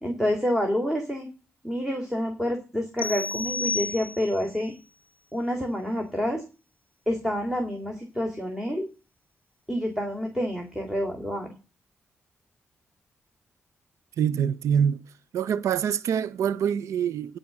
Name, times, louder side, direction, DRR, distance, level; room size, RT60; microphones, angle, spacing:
voice 1, 0.0-1.3 1.6-4.7 5.3-6.4 7.1-8.8 9.7-11.5, equal, 10° right, 3.4 m, -28 dB
sound 1, 3.0-4.5, left 4 dB, 25° left, 2.1 m, -31 dB
voice 2, 14.2-15.0 15.3-17.4, right 8 dB, 90° right, 0.5 m, -25 dB
15.0 x 5.0 x 7.2 m
cardioid pair, 70°, 5 cm